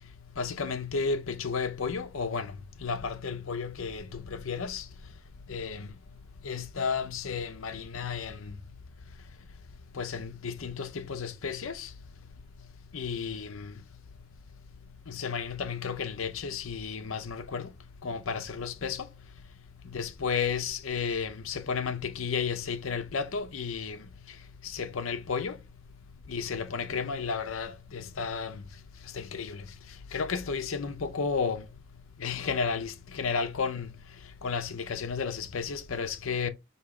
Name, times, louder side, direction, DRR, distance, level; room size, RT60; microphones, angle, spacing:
voice 1, 0.4-2.5 2.8-4.8 5.5-5.9 6.4-8.5 10.0-11.9 12.9-13.7 15.1-17.7 18.0-19.1 19.9-24.0 24.6-25.6 26.3-28.6 29.1-29.6 30.1-31.6 32.2-33.9 34.4-36.5, left 5 dB, 80° left, 0.6 m, -32 dB
4.8 x 3.0 x 3.1 m
head